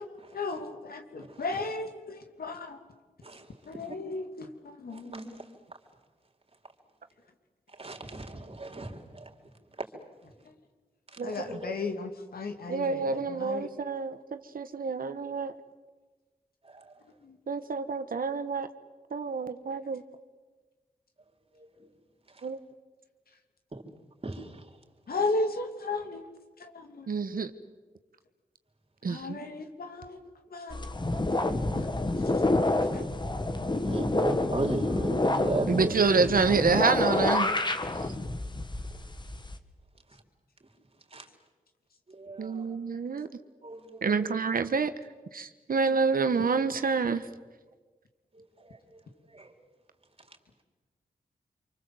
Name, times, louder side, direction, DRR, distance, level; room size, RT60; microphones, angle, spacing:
voice 1, 0.0-2.8 3.7-5.1 11.2-13.7 17.2-17.3 25.1-26.2 26.6-27.1 29.1-30.2 30.5-30.9, left 3 dB, 80° left, 5 dB, 2.9 m, -35 dB
voice 2, 4.9-5.4 7.8-9.3 11.4-11.6 16.6-16.9 23.7-23.8 24.2-24.6 33.8-35.9 41.1-41.3 42.1-42.7 43.6-44.3 48.6-48.8 49.3-49.5, right 2 dB, 40° right, 2 dB, 4.3 m, -35 dB
voice 3, 12.7-15.5 17.5-18.7 19.1-20.0 22.4-22.6 27.1-27.5 29.0-29.4 35.7-37.5 42.4-43.3 44.0-44.9 45.3-47.2, right 4 dB, 70° right, 10 dB, 1.4 m, -27 dB
sound 1, 30.7-39.6, left 2 dB, 30° left, 2.1 m, -28 dB
27.0 x 25.0 x 8.0 m, 1.3 s
cardioid pair, 55°, 15 cm